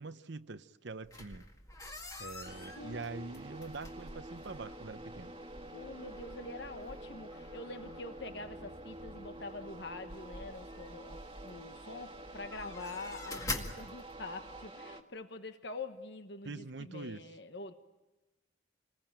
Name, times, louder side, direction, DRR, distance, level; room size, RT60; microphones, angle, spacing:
voice 1, 0.0-1.5 2.2-5.3 16.4-17.2, right 3 dB, 65° right, 0.8 m, -44 dB
sound 1, 1.0-14.7, left 2 dB, 15° left, 2.0 m, -47 dB
sound 2, 2.4-15.0, right 1 dB, 25° right, 1.7 m, -48 dB
voice 2, 2.8-3.3 5.7-17.7, left 3 dB, 60° left, 1.2 m, -45 dB
28.0 x 20.5 x 8.9 m
head